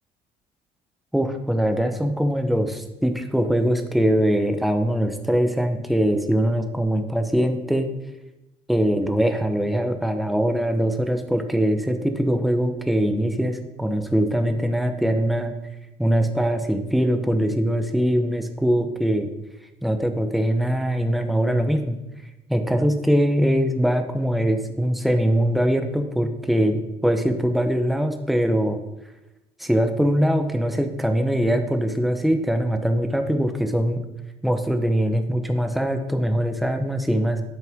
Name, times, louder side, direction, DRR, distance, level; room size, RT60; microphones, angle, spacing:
voice 1, 1.1-7.9 8.7-15.5 16.0-19.3 19.8-22.0 22.5-28.8 29.6-34.0 34.4-37.4, equal, ahead, 6 dB, 0.9 m, -22 dB
8.7 x 5.9 x 3.6 m, 0.96 s
supercardioid pair, 70°, 19 cm